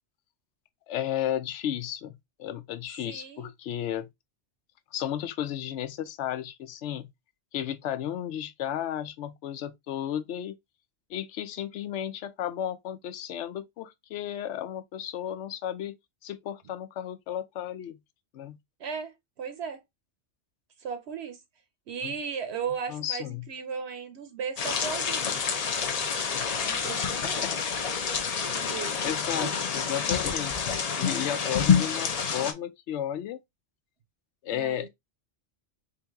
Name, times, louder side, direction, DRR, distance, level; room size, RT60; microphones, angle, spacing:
voice 1, 0.9-2.1 2.4-4.1 4.9-7.1 7.5-10.5 11.1-15.9 16.2-18.0 18.3-18.6 22.0-22.1 22.9-23.5 27.2-27.6 28.4-28.7 29.0-30.7 31.0-33.4 34.4-34.9, left 10 dB, 80° left, 0.9 m, -33 dB
voice 2, 3.1-3.5 18.8-19.8 20.8-21.4 21.9-25.4 26.6-27.4 28.6-29.0 29.4-29.5 34.5-34.9, right 6 dB, 70° right, 0.9 m, -36 dB
sound 1, 24.6-32.5, left 6 dB, 45° left, 0.5 m, -28 dB
3.8 x 2.8 x 3.5 m
omnidirectional pair, 1.2 m